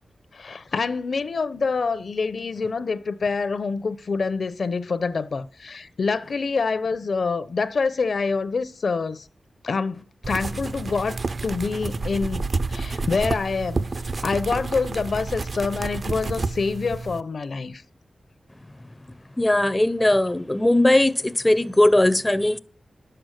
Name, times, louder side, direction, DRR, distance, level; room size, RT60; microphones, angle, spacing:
voice 1, 0.3-9.2 9.6-13.9 14.2-17.8, left 4 dB, 60° left, 0.7 m, -26 dB
sound 1, 10.2-17.2, right 3 dB, 45° right, 0.5 m, -29 dB
voice 2, 19.4-22.6, left 1 dB, 10° left, 0.5 m, -19 dB
11.0 x 7.8 x 6.5 m
wide cardioid pair, 135°, 0 cm